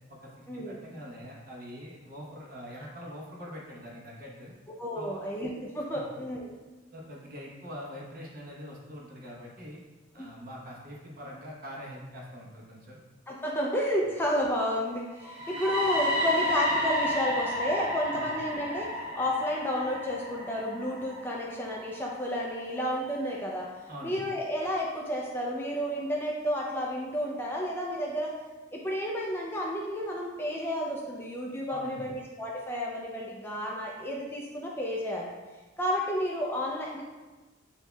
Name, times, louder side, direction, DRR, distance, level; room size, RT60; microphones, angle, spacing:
voice 1, 0.1-4.5 4.9-5.2 5.9-6.0 6.9-9.8 10.1-13.0 18.1-18.3 23.9-24.2 31.7-32.1, equal, 45° right, -3 dB, 1.0 m, -44 dB
voice 2, 4.8-6.5 10.2-10.3 13.3-18.9 19.2-23.7 24.0-28.3 28.7-35.3 35.8-37.0, equal, 10° left, -3 dB, 0.4 m, -31 dB
sound 1, 15.2-23.1, equal, 85° right, 1.2 m, -32 dB
8.0 x 2.7 x 2.3 m, 1.2 s
head